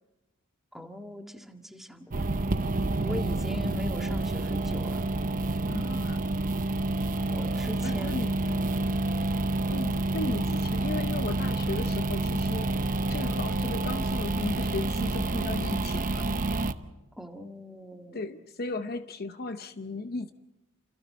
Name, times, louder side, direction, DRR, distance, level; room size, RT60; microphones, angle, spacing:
voice 1, 0.7-2.3 3.0-5.1 7.3-8.8 17.2-18.2, left 1 dB, ahead, 3 dB, 1.8 m, -40 dB
sound 1, 2.1-16.7, right 2 dB, 40° right, 0.9 m, -28 dB
voice 2, 5.7-6.2 7.8-8.3 9.7-12.7 13.1-16.3 18.1-20.3, left 2 dB, 45° left, 9 dB, 0.8 m, -35 dB
30.0 x 28.0 x 4.3 m, 1.0 s
head